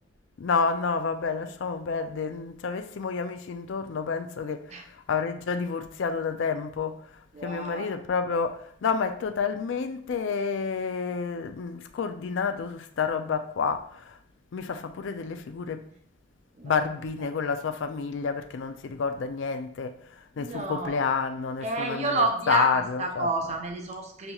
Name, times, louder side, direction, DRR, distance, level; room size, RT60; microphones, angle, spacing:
voice 1, 0.4-14.2 14.5-15.9 16.6-23.3, left 5 dB, 65° left, 0.4 m, -29 dB
voice 2, 7.3-7.9 16.6-16.9 20.4-21.0 21.6-24.3, right 2 dB, 35° right, 0.6 m, -30 dB
6.6 x 2.9 x 2.3 m
head